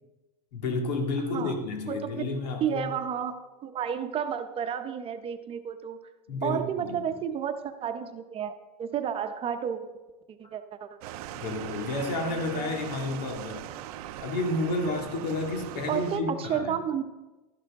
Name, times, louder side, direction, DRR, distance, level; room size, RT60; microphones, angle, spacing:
voice 1, 0.5-2.9 6.3-7.1 10.4-10.5 11.3-13.7 14.2-16.8, left 2 dB, 80° left, 2.3 m, -31 dB
voice 2, 1.9-2.2 2.6-6.0 6.4-9.8 10.3-10.9 15.9-17.0, right 8 dB, 25° right, 0.9 m, -31 dB
sound 1, 11.0-16.2, right 13 dB, 65° right, 0.6 m, -40 dB
12.5 x 10.5 x 3.7 m
supercardioid pair, 130°, 21 cm